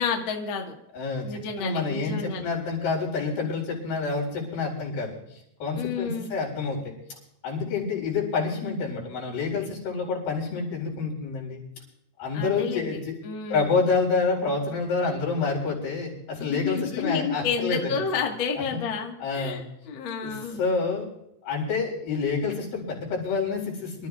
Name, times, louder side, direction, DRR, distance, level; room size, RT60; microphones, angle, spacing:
voice 1, 0.0-0.7 1.2-2.5 5.7-6.3 12.3-13.7 16.4-20.6, left 6 dB, 50° left, 2 dB, 1.5 m, -30 dB
voice 2, 0.9-1.3 1.6-6.9 7.4-11.6 12.2-13.2 13.5-18.0 18.7-18.8 19.2-19.6 20.2-21.1 21.4-24.1, left 4 dB, 70° left, -3 dB, 6.3 m, -28 dB
25.5 x 13.5 x 2.4 m, 0.78 s
omnidirectional pair, 4.6 m